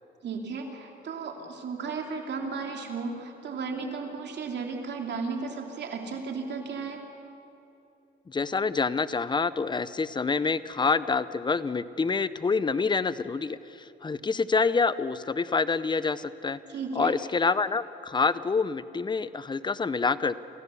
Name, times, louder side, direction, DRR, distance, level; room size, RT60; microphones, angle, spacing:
voice 1, 0.2-7.0 16.7-17.1, right 4 dB, 60° right, 2 dB, 2.9 m, -34 dB
voice 2, 8.3-16.6 17.0-20.4, left 4 dB, 25° left, 15 dB, 0.7 m, -27 dB
28.0 x 15.0 x 6.9 m, 3.0 s
cardioid pair, 90°, 20 cm